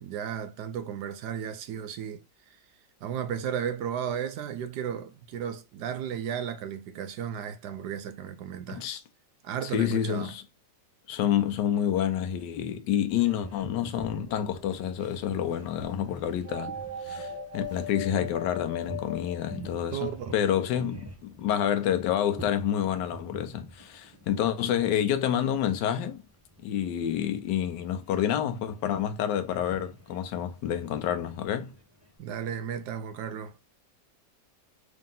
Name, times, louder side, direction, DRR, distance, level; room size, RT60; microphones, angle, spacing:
voice 1, 0.0-2.2 3.0-8.8 9.4-10.3 17.1-17.2 19.9-20.5 32.2-33.6, right 8 dB, 75° right, 1.2 m, -34 dB
voice 2, 9.6-10.4 11.1-16.8 17.0-26.2 26.6-31.7, left 10 dB, 80° left, 1.3 m, -28 dB
Boat Water vehicle, 13.2-32.2, equal, 20° right, 0.4 m, -48 dB
sound 1, 14.3-15.0 16.4-20.3, left 4 dB, 50° right, 1.4 m, -38 dB
3.7 x 2.8 x 3.7 m
omnidirectional pair, 1.9 m